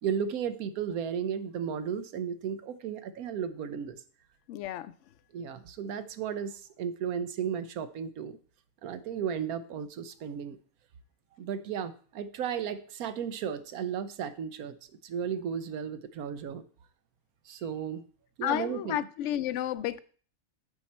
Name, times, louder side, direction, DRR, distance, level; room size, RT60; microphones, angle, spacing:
voice 1, 0.0-4.0 5.3-8.4 8.8-10.6 11.3-14.8 15.0-16.6 17.5-18.0 18.4-19.0, right 7 dB, 90° right, 1.2 m, -34 dB
voice 2, 4.5-4.9 18.4-20.0, left 12 dB, 65° left, 0.8 m, -31 dB
12.0 x 4.7 x 4.2 m
omnidirectional pair, 1.5 m